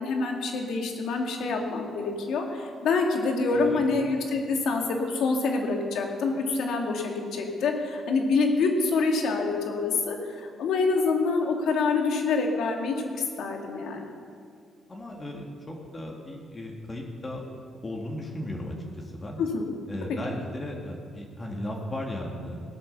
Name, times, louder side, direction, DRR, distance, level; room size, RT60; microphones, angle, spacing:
voice 1, 0.0-14.1 19.4-19.7 20.1-20.2, left 4 dB, 75° left, 2 dB, 2.3 m, -26 dB
voice 2, 14.9-17.4 17.8-18.7 19.1-19.4 19.9-22.6, left 1 dB, 25° left, 0 dB, 2.2 m, -36 dB
18.0 x 8.6 x 6.9 m, 2.2 s
cardioid pair, 90°, 0 cm